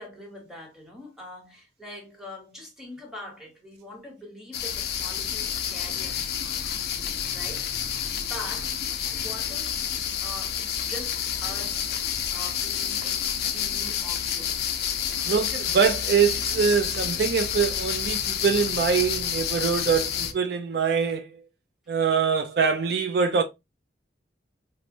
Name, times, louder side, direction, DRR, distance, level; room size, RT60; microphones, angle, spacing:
voice 1, 0.0-6.6 7.3-7.7 8.3-8.8 9.1-14.7, left 1 dB, ahead, 1.0 m, -43 dB
sound 1, 4.5-20.3, left 8 dB, 60° left, 0.5 m, -29 dB
voice 2, 15.2-21.3 21.9-23.4, right 6 dB, 60° right, 0.3 m, -24 dB
4.3 x 2.0 x 2.5 m
head